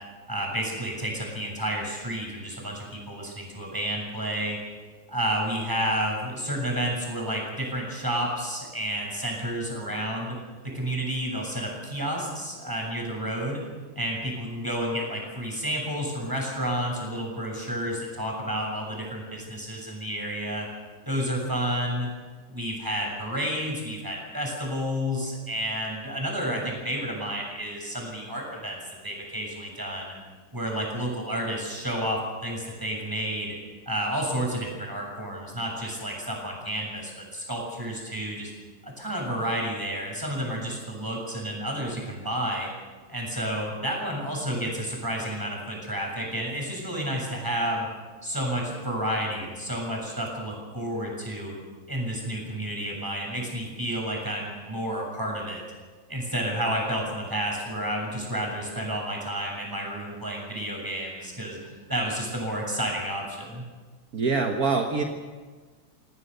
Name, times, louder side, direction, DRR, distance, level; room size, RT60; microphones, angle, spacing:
voice 1, 0.3-4.6 5.1-10.4 10.6-13.6 14.0-20.7 21.1-22.1 22.5-28.8 29.0-30.1 30.5-33.5 33.9-38.5 38.8-42.7 43.1-47.9 48.2-51.5 51.9-55.6 56.1-63.6, equal, 10° right, -1 dB, 7.2 m, -30 dB
voice 2, 64.1-65.0, right 4 dB, 65° right, 3 dB, 1.9 m, -24 dB
27.5 x 18.0 x 6.8 m, 1.4 s
omnidirectional pair, 1.7 m